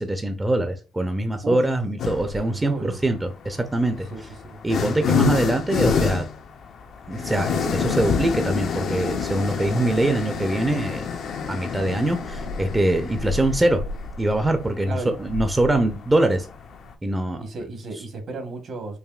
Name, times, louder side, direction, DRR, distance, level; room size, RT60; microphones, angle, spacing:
voice 1, 0.0-4.1 4.6-6.3 7.1-11.0 11.5-13.8 14.2-16.5 17.0-17.4, right 1 dB, 15° right, 0.6 m, -23 dB
sound 1, 2.0-2.5 3.4-16.9, left 6 dB, 65° left, 0.7 m, -28 dB
voice 2, 2.5-3.0 4.1-4.6 14.8-15.1 17.4-19.0, right 3 dB, 60° right, 1.2 m, -34 dB
4.8 x 2.6 x 2.4 m
cardioid pair, 90°, 0 cm